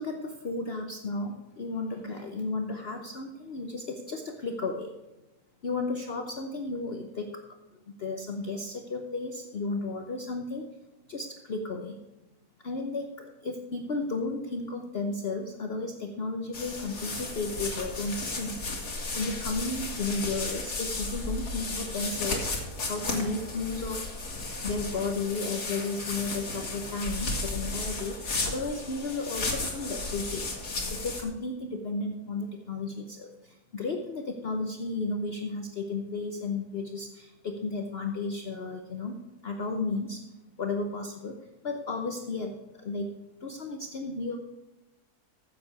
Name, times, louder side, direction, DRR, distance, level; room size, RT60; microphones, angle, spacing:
voice 1, 0.0-4.9 5.6-7.4 8.0-10.6 11.1-12.0 12.6-18.6 19.1-24.1 24.4-30.4 30.9-40.2 40.6-41.4 41.6-43.1 43.4-44.4, left 3 dB, 45° left, 4 dB, 0.9 m, -33 dB
sound 1, 16.5-31.2, left 3 dB, 75° left, 2.6 m, -34 dB
14.0 x 7.7 x 4.7 m, 1.1 s
omnidirectional pair, 1.7 m